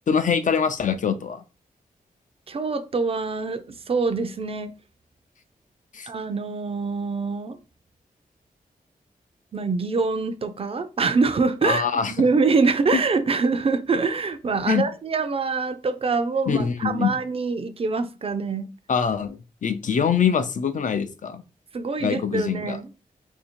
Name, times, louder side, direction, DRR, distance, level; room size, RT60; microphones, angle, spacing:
voice 1, 0.1-1.4 5.9-6.1 11.6-12.1 14.7-14.8 16.5-17.1 18.9-21.4 22.0-22.8, left 7 dB, 55° left, 0.5 m, -24 dB
voice 2, 2.5-4.7 6.1-7.6 9.5-18.7 21.7-22.9, right 4 dB, 40° right, 0.5 m, -24 dB
2.8 x 2.7 x 4.3 m
wide cardioid pair, 125°, 15 cm